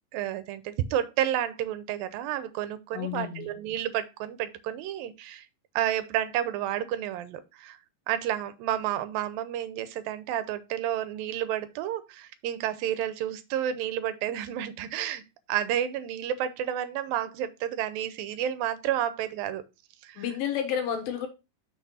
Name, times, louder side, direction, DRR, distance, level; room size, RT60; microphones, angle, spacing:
voice 1, 0.1-5.5 5.8-7.8 8.1-15.2 15.5-19.6 20.0-20.2, right 11 dB, 85° right, 2.6 m, -30 dB
voice 2, 2.9-3.5 20.2-21.3, left 9 dB, 85° left, 3.0 m, -31 dB
6.2 x 6.0 x 4.1 m
omnidirectional pair, 4.0 m